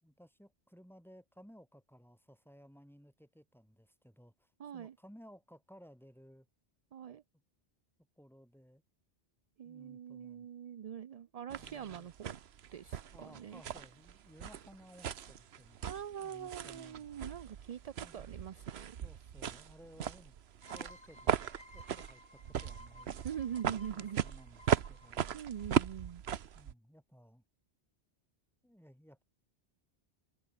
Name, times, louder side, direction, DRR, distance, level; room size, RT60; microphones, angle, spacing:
voice 1, 0.0-6.5 8.2-8.8 9.6-10.5 11.5-12.1 13.1-17.1 18.0-18.2 19.0-20.4 20.7-23.2 23.9-25.4 26.5-27.4 28.6-29.2, equal, ahead, 4.8 m, -58 dB
voice 2, 4.6-5.0 6.9-7.2 9.6-12.4 12.7-13.6 15.8-19.0 23.2-24.2 25.3-26.2, right 9 dB, 55° right, 0.4 m, -43 dB
sound 1, 11.5-26.7, right 9 dB, 70° right, 1.1 m, -38 dB
sound 2, 20.6-26.1, left 1 dB, 85° left, 7.6 m, -57 dB
omnidirectional pair, 1.1 m